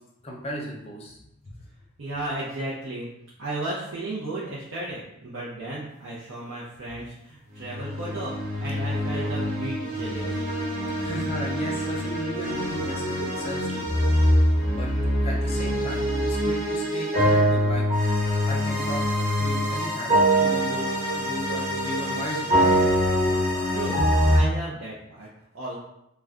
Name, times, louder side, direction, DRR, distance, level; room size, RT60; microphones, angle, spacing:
voice 1, 0.2-1.2 11.0-13.9 14.7-14.9 15.2-17.8 18.5-19.0 19.4-22.7, equal, 30° left, -1 dB, 0.5 m, -35 dB
voice 2, 2.0-3.1 3.4-8.3 8.6-10.4 23.7-24.0 24.3-25.3 25.5-25.8, right 2 dB, 75° right, -7 dB, 0.6 m, -34 dB
sound 1, 7.6-24.4, equal, 40° right, 1.0 m, -24 dB
2.3 x 2.1 x 3.6 m, 0.80 s
head